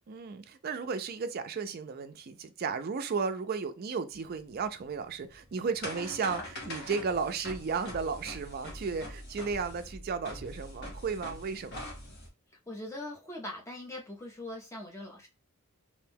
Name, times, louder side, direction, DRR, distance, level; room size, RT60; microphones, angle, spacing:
voice 1, 0.1-11.8, right 5 dB, 40° right, 0.3 m, -34 dB
sound 1, 4.2-12.3, left 1 dB, 50° left, 1.0 m, -43 dB
voice 2, 12.7-15.3, left 1 dB, 15° left, 0.6 m, -41 dB
2.6 x 2.2 x 3.4 m
head